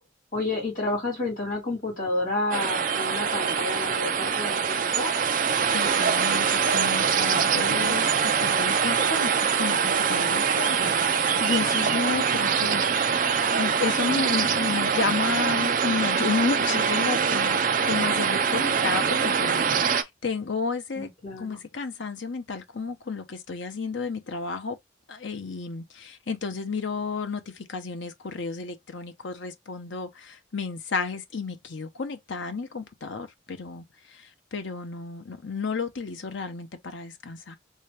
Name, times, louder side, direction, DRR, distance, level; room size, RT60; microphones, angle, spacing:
voice 1, 0.3-5.1 21.0-21.6, left 2 dB, 45° left, 2.2 m, -30 dB
sound 1, 2.5-20.0, right 6 dB, 45° right, 0.4 m, -24 dB
voice 2, 5.7-21.1 21.4-24.8 25.1-37.6, left 4 dB, 70° left, 0.7 m, -32 dB
3.3 x 2.8 x 3.3 m
head